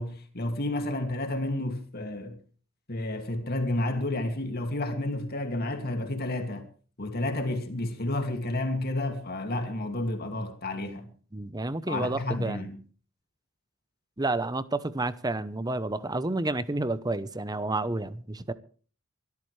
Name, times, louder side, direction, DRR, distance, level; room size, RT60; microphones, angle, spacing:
voice 1, 0.0-2.4 2.9-6.7 7.0-11.1 11.9-12.8, left 1 dB, 45° left, 2.4 m, -31 dB
voice 2, 11.3-12.7 14.2-18.5, right 2 dB, 20° right, 0.8 m, -30 dB
24.0 x 13.5 x 3.3 m
head